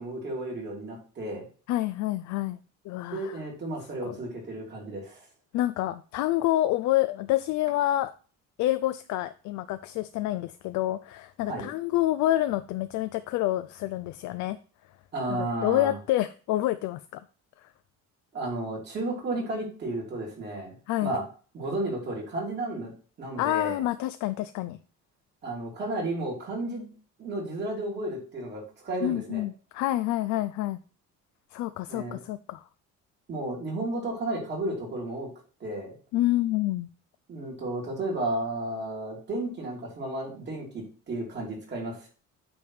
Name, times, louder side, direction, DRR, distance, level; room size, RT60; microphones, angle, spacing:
voice 1, 0.0-1.5 3.1-5.2 11.5-11.7 15.1-16.0 18.3-20.7 21.0-21.2 21.5-22.9 23.2-23.8 25.4-26.9 27.2-29.4 31.9-32.2 33.3-35.3 35.6-36.0 37.3-42.1, right 2 dB, 35° right, -2 dB, 3.1 m, -33 dB
voice 2, 1.7-2.6 2.8-3.4 4.0-4.2 5.5-8.1 8.6-14.6 15.3-17.2 17.6-17.7 20.9-21.1 23.4-24.8 29.0-30.8 31.5-32.6 36.1-36.9, left 15 dB, 70° left, 12 dB, 0.5 m, -28 dB
8.6 x 3.5 x 6.2 m, 0.39 s
cardioid pair, 160°, 30 cm